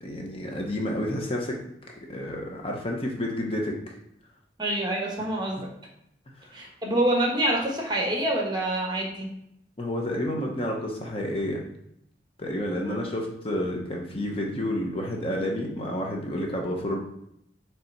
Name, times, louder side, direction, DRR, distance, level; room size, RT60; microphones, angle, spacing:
voice 1, 0.0-1.6 2.1-3.9 6.4-6.5 9.8-11.6 12.4-17.0, left 1 dB, 30° left, 0 dB, 0.9 m, -30 dB
voice 2, 4.6-5.7 6.5-9.3 12.8-13.0, right 1 dB, 25° right, 0 dB, 1.2 m, -26 dB
6.8 x 3.4 x 4.5 m, 0.76 s
head